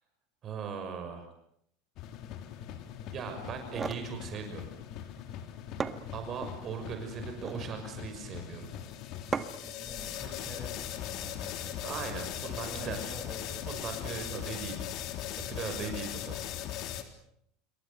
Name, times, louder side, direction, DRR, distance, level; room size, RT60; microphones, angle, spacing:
voice 1, 0.4-1.3 3.1-4.7 6.1-8.7 11.8-13.1 13.7-14.9 15.3-17.0, right 6 dB, 40° right, 5 dB, 6.2 m, -39 dB
sound 1, 2.0-17.0, left 11 dB, 55° left, 3.5 m, -40 dB
sound 2, 3.5-4.1 5.4-5.5 5.8-6.6 7.3-7.7 9.3-9.8, right 5 dB, 25° right, 1.7 m, -36 dB
voice 2, 9.6-12.2 12.4-13.6 15.8-16.0, right 1 dB, ahead, 2 dB, 7.3 m, -47 dB
28.0 x 23.5 x 6.9 m, 0.70 s
supercardioid pair, 105°, 0 cm